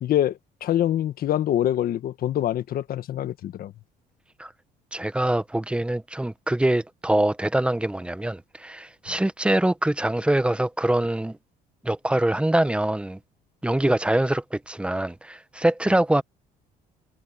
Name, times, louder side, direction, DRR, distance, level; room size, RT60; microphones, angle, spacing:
voice 1, 0.0-3.7, left 11 dB, 60° left, 1.6 m, -25 dB
voice 2, 4.9-11.4 11.8-13.2 13.6-16.2, right 1 dB, 5° right, 1.0 m, -24 dB
cardioid pair, 110°, 17 cm